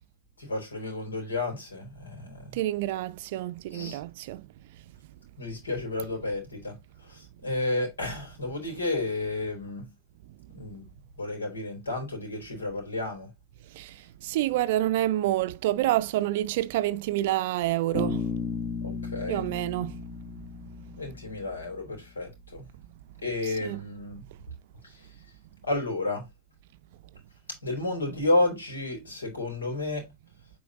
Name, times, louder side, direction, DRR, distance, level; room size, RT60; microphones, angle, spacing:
voice 1, 0.4-2.6 3.7-4.0 5.4-6.8 7.1-9.9 10.5-10.9 11.2-13.3 18.8-19.4 21.0-22.6 23.2-24.2 25.6-26.3 27.6-30.1, left 2 dB, 75° left, 4.2 m, -31 dB
voice 2, 2.5-4.5 13.7-18.3 19.3-20.0 23.4-23.8, right 14 dB, 50° right, 0.5 m, -28 dB
Bass guitar, 17.9-21.8, left 5 dB, 25° left, 1.3 m, -34 dB
8.3 x 4.8 x 2.9 m
figure-of-eight pair, 90°, 0 cm